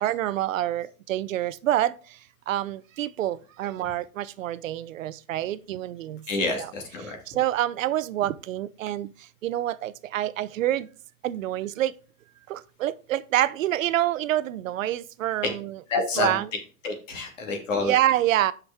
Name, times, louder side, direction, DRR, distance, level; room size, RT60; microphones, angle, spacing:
voice 1, 0.0-1.9 2.5-6.2 6.5-6.7 7.4-9.1 9.4-10.9 11.2-11.9 12.5-15.8 16.2-16.5 17.8-18.5, right 13 dB, 65° right, 0.6 m, -27 dB
voice 2, 6.3-7.2 15.9-16.4 16.8-18.0, left 3 dB, 60° left, 2.6 m, -28 dB
8.3 x 6.0 x 3.6 m
supercardioid pair, 175°, 43 cm